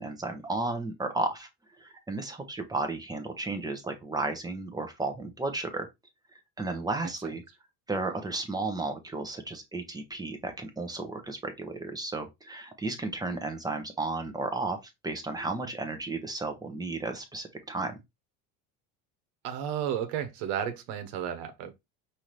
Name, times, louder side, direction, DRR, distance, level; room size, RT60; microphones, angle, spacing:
voice 1, 0.0-1.5 1.8-5.9 6.6-7.4 7.9-18.0, right 2 dB, 10° right, 0.8 m, -33 dB
voice 2, 19.4-21.7, right 9 dB, 85° right, 1.0 m, -33 dB
5.6 x 2.7 x 3.1 m
cardioid pair, 140°, 36 cm